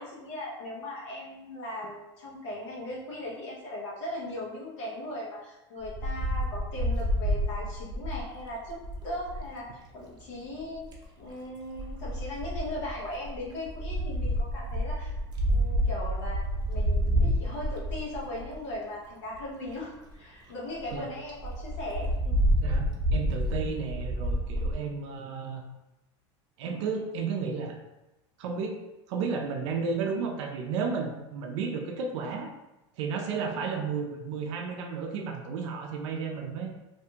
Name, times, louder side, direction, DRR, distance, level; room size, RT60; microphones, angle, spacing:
voice 1, 0.0-8.8 9.0-9.7 9.9-10.9 11.2-15.1 15.5-22.4 32.2-32.3 33.5-33.6, left 1 dB, 75° left, -6 dB, 0.9 m, -38 dB
Wind, 5.8-9.5 10.6-11.0 11.8-18.7 19.3-19.4 19.7-19.8 20.1-20.2 20.5-20.6 20.8-21.0 21.4-24.7, equal, 30° right, 0.7 m, -29 dB
voice 2, 22.6-25.6 26.6-27.8 28.4-28.8 29.1-32.5 33.0-36.7, right 5 dB, 75° right, 2 dB, 0.4 m, -33 dB
2.6 x 2.3 x 2.8 m, 0.97 s
hypercardioid pair, 100°, 15 cm